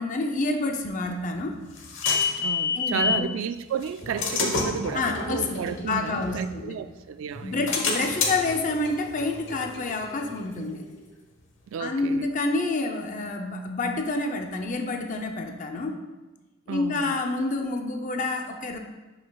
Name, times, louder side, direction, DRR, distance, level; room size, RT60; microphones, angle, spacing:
voice 1, 0.0-1.6 2.8-3.3 4.9-6.8 7.4-10.9 11.8-16.0 16.7-18.8, left 2 dB, 40° left, 0.6 m, -28 dB
sound 1, 1.1-3.3 3.8-6.9 7.3-10.8, left 4 dB, 70° left, 1.1 m, -29 dB
voice 2, 2.4-7.6 11.7-12.3 16.7-17.1, right 7 dB, 80° right, 0.3 m, -32 dB
11.0 x 5.7 x 2.3 m
head